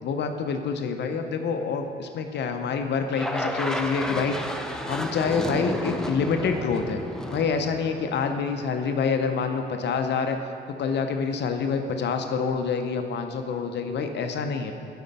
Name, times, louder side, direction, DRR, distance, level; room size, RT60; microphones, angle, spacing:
voice 1, 0.0-4.4 4.9-7.0 7.3-10.4 10.8-14.7, left 5 dB, 60° left, 6 dB, 0.6 m, -27 dB
sound 1, 3.1-8.5, left 1 dB, 5° left, 0.5 m, -32 dB
Bowed string instrument, 6.5-11.4, right 5 dB, 25° right, 0.9 m, -50 dB
8.2 x 4.3 x 5.3 m, 2.8 s
cardioid pair, 90°, 20 cm